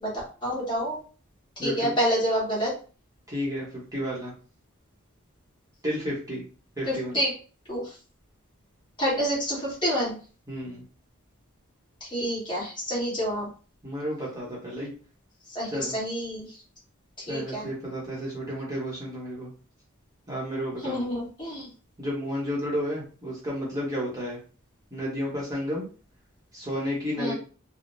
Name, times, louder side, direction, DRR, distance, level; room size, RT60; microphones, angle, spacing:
voice 1, 0.4-1.0 1.6-2.7 6.9-7.3 7.7-7.9 9.0-10.2 12.0-13.5 15.5-16.5 17.3-17.7 20.8-21.7 27.2-27.3, equal, 20° left, -7 dB, 1.4 m, -28 dB
voice 2, 1.6-1.9 3.3-4.3 5.8-6.4 6.8-7.2 10.5-10.8 13.8-14.9 15.7-15.9 17.3-19.5 20.3-21.0 22.0-24.4 24.9-25.9 26.5-27.3, equal, 15° right, -6 dB, 0.9 m, -31 dB
3.4 x 2.0 x 2.6 m, 0.38 s
head